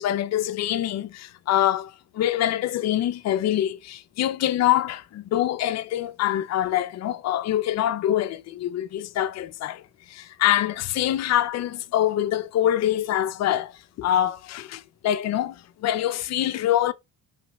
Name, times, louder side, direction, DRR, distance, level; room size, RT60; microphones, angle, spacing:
voice 1, 0.0-9.8 10.1-13.7 14.0-15.5 15.8-16.9, left 12 dB, 55° left, 0.6 m, -25 dB
4.1 x 3.2 x 3.1 m
supercardioid pair, 80°, 31 cm